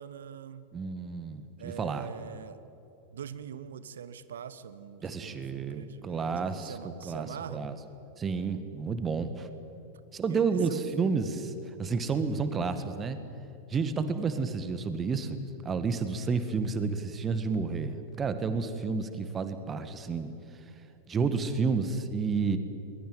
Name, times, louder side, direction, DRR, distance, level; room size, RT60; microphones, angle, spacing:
voice 1, 0.0-0.7 1.6-2.6 3.1-7.7 10.3-10.8, right 8 dB, 65° right, 15 dB, 1.2 m, -43 dB
voice 2, 0.7-2.1 5.0-7.8 8.2-9.5 10.1-11.5 11.8-13.2 13.7-20.3 21.1-22.6, right 5 dB, 20° right, 10 dB, 1.8 m, -30 dB
21.5 x 21.5 x 9.1 m, 2.7 s
figure-of-eight pair, 90°, 0 cm